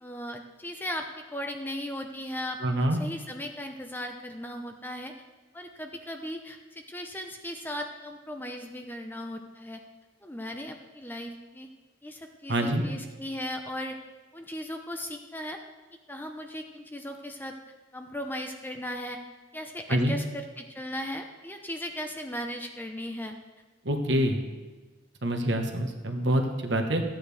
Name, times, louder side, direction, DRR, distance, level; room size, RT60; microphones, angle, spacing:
voice 1, 0.0-5.1 5.5-9.8 10.2-11.7 12.0-14.0 14.3-15.6 16.1-17.5 17.9-19.2 19.5-23.3, left 1 dB, 10° left, 4 dB, 0.7 m, -37 dB
voice 2, 2.6-3.0 12.5-12.8 19.9-20.1 23.8-24.4 25.2-27.0, right 1 dB, 65° right, 4 dB, 1.3 m, -26 dB
15.0 x 9.0 x 3.5 m, 1.2 s
head